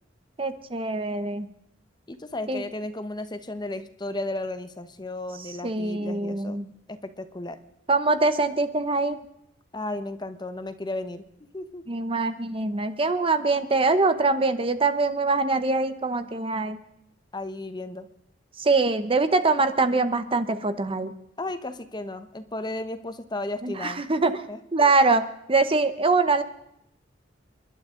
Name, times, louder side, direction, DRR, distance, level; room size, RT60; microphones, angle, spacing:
voice 1, 0.4-1.5 2.5-2.6 5.6-6.7 7.9-9.2 11.9-16.8 18.6-21.1 23.6-24.4 24.7-26.4, right 3 dB, 30° right, 10 dB, 0.9 m, -23 dB
voice 2, 2.1-6.6 6.9-7.6 9.7-11.2 11.5-11.9 17.3-18.1 21.4-24.0 24.3-24.9, left 2 dB, 25° left, 10 dB, 1.0 m, -34 dB
29.5 x 11.5 x 3.8 m, 0.80 s
head